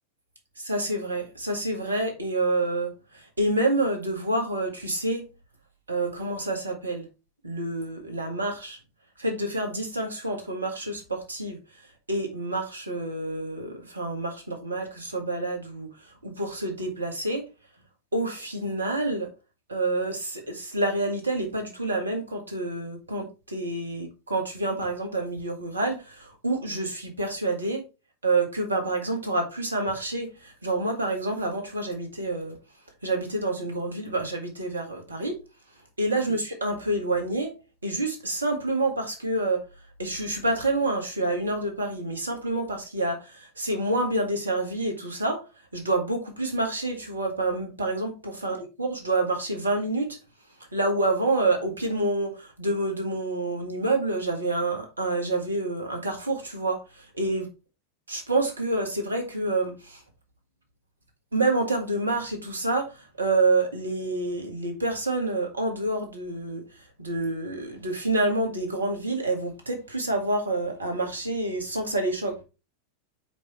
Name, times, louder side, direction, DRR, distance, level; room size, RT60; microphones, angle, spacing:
voice 1, 0.6-5.3 5.9-7.1 7.4-8.8 9.2-11.6 12.1-15.9 16.2-17.4 18.1-19.3 19.7-27.8 28.2-32.6 33.0-35.4 36.0-37.5 37.8-39.6 40.0-45.4 45.7-50.2 50.7-57.5 58.1-60.0 61.3-66.6 67.0-72.4, right 2 dB, 80° right, 1.9 m, -28 dB
5.2 x 5.1 x 4.4 m
figure-of-eight pair, 90°, 0 cm